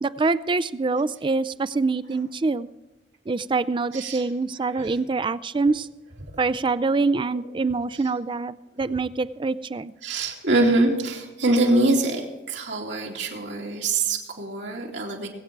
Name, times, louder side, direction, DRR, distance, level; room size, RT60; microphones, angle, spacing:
voice 1, 0.0-2.7 3.3-5.9 6.4-9.9, right 3 dB, 25° right, 16 dB, 0.4 m, -25 dB
voice 2, 10.0-15.3, right 2 dB, 85° right, -1 dB, 3.0 m, -24 dB
21.0 x 8.6 x 4.6 m, 1.1 s
head